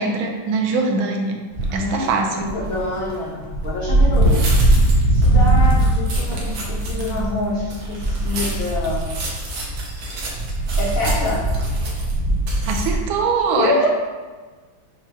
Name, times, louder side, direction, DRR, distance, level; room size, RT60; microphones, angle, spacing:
voice 1, 0.0-1.4 1.7-2.4 12.7-13.9, right 4 dB, 80° right, 2 dB, 1.4 m, -22 dB
sound 1, 1.5-1.9 2.4-13.0, right 1 dB, 60° right, 1.1 m, -20 dB
voice 2, 1.7-2.1 2.3-4.5 5.1-9.1 10.8-11.5 13.5-13.9, left 2 dB, 85° left, -3 dB, 0.7 m, -26 dB
5.9 x 2.9 x 2.7 m, 1.3 s
omnidirectional pair, 2.2 m